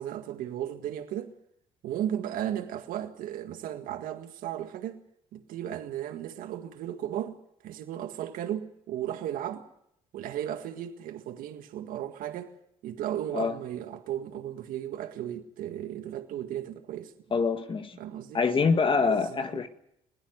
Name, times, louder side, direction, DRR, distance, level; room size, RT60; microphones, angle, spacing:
voice 1, 0.0-1.3 1.8-5.0 5.3-7.4 7.6-9.7 10.1-12.6 12.8-17.1 18.0-18.4 18.9-19.6, right 11 dB, 75° right, 1.8 m, -35 dB
voice 2, 17.3-18.0 18.3-19.7, left 5 dB, 35° left, 1.8 m, -25 dB
21.0 x 17.0 x 9.4 m
supercardioid pair, 80°, 15 cm